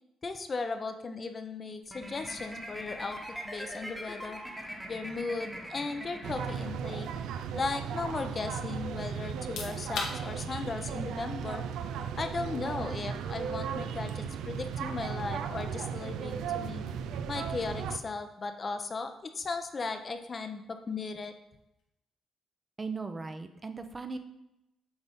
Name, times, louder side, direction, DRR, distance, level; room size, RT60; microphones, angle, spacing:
voice 1, 0.2-3.2 3.4-4.4 4.9-7.1 7.5-11.6 12.2-16.9 17.3-21.3, left 4 dB, 35° left, 7 dB, 0.6 m, -36 dB
sound 1, 1.9-7.1, equal, ahead, 1.1 m, -42 dB
sound 2, 6.2-18.0, right 7 dB, 85° right, 0.3 m, -36 dB
sound 3, 9.3-22.0, left 4 dB, 90° left, 1.2 m, -48 dB
voice 2, 22.8-24.2, right 4 dB, 30° right, 8 dB, 0.6 m, -38 dB
8.0 x 4.0 x 3.6 m, 0.87 s
cardioid pair, 90°, 0 cm